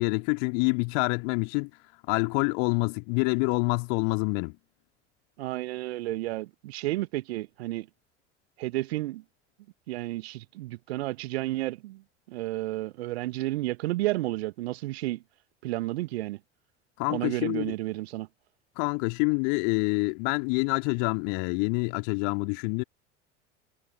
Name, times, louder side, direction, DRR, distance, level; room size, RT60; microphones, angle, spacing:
voice 1, 0.0-1.7 2.1-4.6 17.0-17.7 18.8-22.8, left 40 dB or more, 50° left, 2.6 m, -27 dB
voice 2, 5.4-7.9 8.6-9.2 9.9-12.0 12.3-15.2 15.6-16.4 17.1-18.3, right 18 dB, 60° right, 1.6 m, -31 dB
figure-of-eight pair, 75°, 36 cm